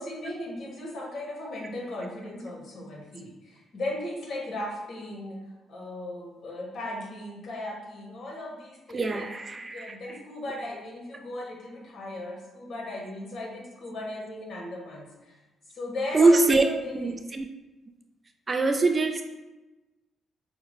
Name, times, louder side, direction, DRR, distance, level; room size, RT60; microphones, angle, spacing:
voice 1, 0.0-9.2 9.5-15.4 15.7-17.2, left 1 dB, 55° left, -1 dB, 1.2 m, -37 dB
voice 2, 8.9-10.0 16.1-16.6 16.9-17.4 18.5-19.2, right 3 dB, 30° right, 6 dB, 0.3 m, -23 dB
5.7 x 2.2 x 3.1 m, 1.1 s
cardioid pair, 90°, 0 cm